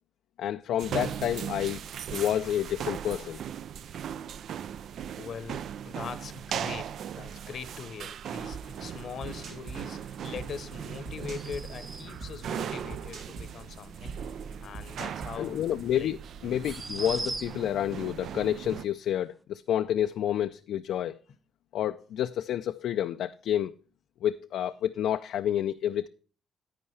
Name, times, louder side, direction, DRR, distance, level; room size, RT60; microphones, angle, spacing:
voice 1, 0.4-1.8 2.1-3.4 15.4-16.2 16.4-21.2 21.7-23.7 24.2-26.1, left 10 dB, 80° left, 0.4 m, -29 dB
sound 1, 0.8-18.8, right 9 dB, 65° right, 0.3 m, -38 dB
voice 2, 5.2-14.1 14.6-15.6 15.9-16.1, left 7 dB, 60° left, 0.8 m, -42 dB
sound 2, 8.5-15.9, right 3 dB, 85° right, 2.3 m, -45 dB
sound 3, 11.2-12.3 15.4-15.5 16.6-17.8, right 2 dB, 25° right, 0.8 m, -38 dB
11.0 x 8.7 x 3.2 m
cardioid pair, 90°, 0 cm